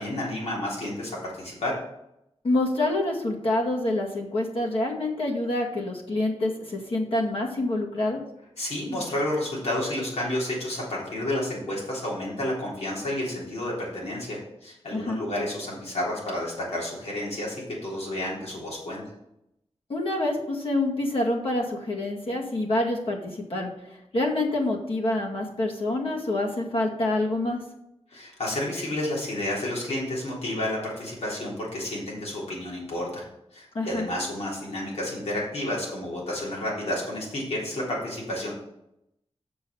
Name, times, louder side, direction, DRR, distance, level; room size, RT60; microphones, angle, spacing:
voice 1, 0.0-1.7 8.6-19.0 28.1-33.2 33.5-38.5, left 1 dB, 85° left, -4 dB, 3.6 m, -31 dB
voice 2, 2.4-8.2 14.9-15.2 19.9-23.7 24.1-27.6 33.7-34.1, left 2 dB, 60° left, -2 dB, 2.0 m, -27 dB
6.8 x 5.8 x 7.0 m, 0.83 s
wide cardioid pair, 110°, 11 cm